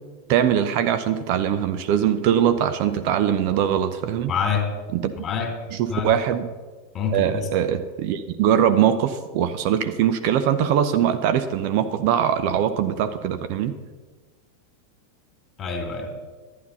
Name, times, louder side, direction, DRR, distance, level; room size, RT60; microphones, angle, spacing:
voice 1, 0.3-4.3 4.9-5.1 5.8-6.5 7.1-13.7, right 9 dB, 45° right, 10 dB, 0.6 m, -22 dB
voice 2, 4.3-4.7 5.2-5.5 5.9-6.1 6.9-7.5 15.6-16.1, left 6 dB, 25° left, 4 dB, 2.5 m, -26 dB
12.0 x 9.5 x 5.5 m, 1.3 s
figure-of-eight pair, 90°, 0 cm